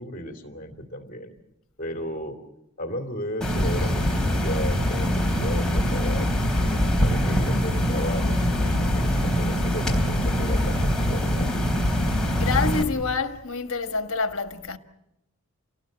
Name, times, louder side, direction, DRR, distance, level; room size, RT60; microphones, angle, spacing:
voice 1, 0.0-1.3 1.8-2.4 2.8-11.6, equal, 40° left, 2.9 m, -35 dB
sound 1, 3.4-12.8, equal, 5° left, 3.5 m, -23 dB
voice 2, 12.4-14.8, left 4 dB, 70° left, 1.5 m, -27 dB
28.5 x 19.0 x 7.5 m
head